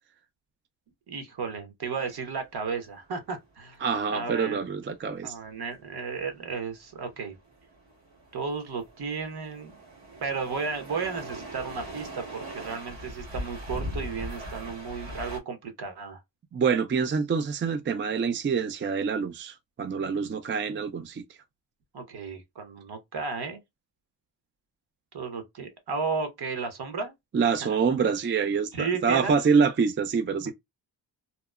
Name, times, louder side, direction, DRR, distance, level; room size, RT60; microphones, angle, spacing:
voice 1, 1.1-3.8 4.1-4.7 5.2-7.3 8.3-9.8 10.2-16.2 21.9-23.6 25.1-27.1 27.6-27.8 28.7-29.4, right 5 dB, 60° right, 1.1 m, -33 dB
sound 1, 2.0-15.4, equal, 80° right, 1.5 m, -41 dB
voice 2, 3.8-5.3 16.5-21.2 27.3-30.5, right 5 dB, 30° right, 0.3 m, -26 dB
2.8 x 2.0 x 2.3 m
cardioid pair, 80°, 44 cm